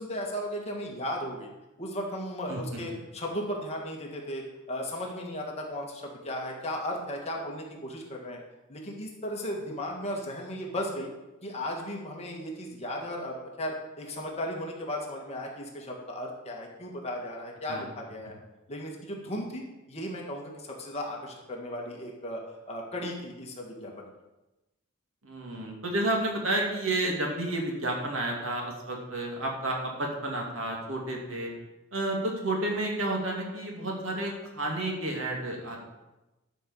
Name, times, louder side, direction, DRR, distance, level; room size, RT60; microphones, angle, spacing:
voice 1, 0.0-1.5 1.8-8.4 8.7-11.1 11.4-18.4 18.7-24.1, equal, 30° left, -1 dB, 2.1 m, -36 dB
voice 2, 25.2-31.5 31.9-35.9, right 1 dB, 70° right, 0 dB, 2.5 m, -31 dB
11.5 x 5.5 x 7.2 m, 1.0 s
head